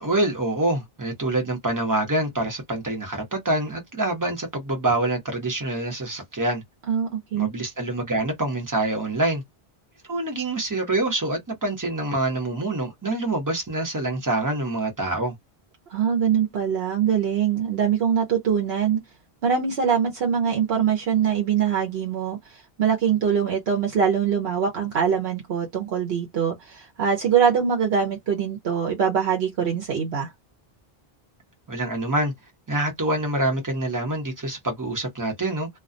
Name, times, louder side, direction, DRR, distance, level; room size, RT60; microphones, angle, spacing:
voice 1, 0.0-6.6 7.3-9.4 10.1-15.3 31.7-32.3 32.7-35.7, right 2 dB, 20° right, 0.8 m, -26 dB
voice 2, 6.9-7.5 15.9-19.0 19.4-30.3, right 7 dB, 80° right, 1.0 m, -23 dB
2.3 x 2.2 x 2.5 m
omnidirectional pair, 1.0 m